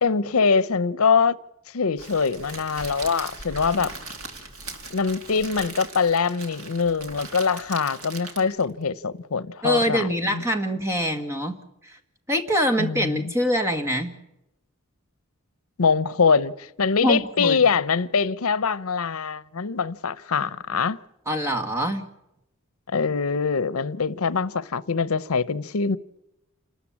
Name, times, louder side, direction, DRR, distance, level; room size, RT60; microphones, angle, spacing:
voice 1, 0.0-1.4 1.7-3.9 4.9-10.4 12.8-13.2 15.8-21.0 22.9-26.0, left 5 dB, 85° left, 0.7 m, -23 dB
Crackle, 2.0-8.7, right 3 dB, 85° right, 3.0 m, -39 dB
voice 2, 9.6-12.0 12.3-14.1 17.0-17.6 21.3-22.0, equal, 10° right, 1.8 m, -24 dB
28.5 x 13.5 x 8.6 m
head